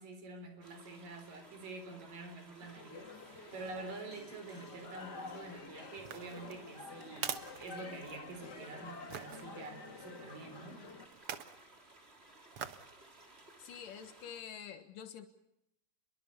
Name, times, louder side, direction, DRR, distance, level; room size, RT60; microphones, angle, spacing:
voice 1, 0.0-10.9, right 3 dB, 80° right, 5.7 m, -47 dB
sound 1, 0.6-14.4, right 2 dB, 20° right, 3.3 m, -59 dB
sound 2, 2.6-11.1, left 4 dB, 35° left, 2.6 m, -49 dB
sound 3, 6.0-8.4 9.1-9.4 11.1-11.6 12.5-12.9 13.4-13.5, right 9 dB, 55° right, 1.8 m, -43 dB
voice 2, 13.6-15.3, left 8 dB, 80° left, 3.0 m, -47 dB
28.5 x 22.5 x 6.9 m
omnidirectional pair, 3.8 m